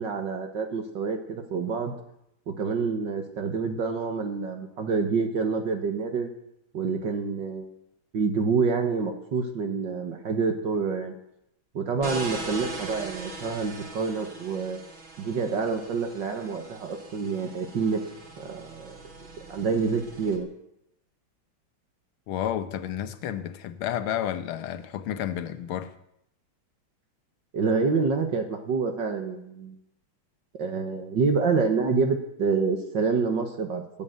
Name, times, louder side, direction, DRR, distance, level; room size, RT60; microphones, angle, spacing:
voice 1, 0.0-1.9 2.5-6.3 6.7-7.7 8.1-11.1 11.7-14.8 15.2-18.0 18.4-19.0 19.5-20.5 27.5-29.8 30.6-33.8, right 5 dB, 60° right, 2.0 m, -27 dB
sound 1, 12.0-20.4, right 3 dB, 40° right, 2.3 m, -40 dB
voice 2, 22.3-25.9, left 10 dB, 85° left, 1.8 m, -31 dB
16.5 x 7.8 x 8.1 m
omnidirectional pair, 2.3 m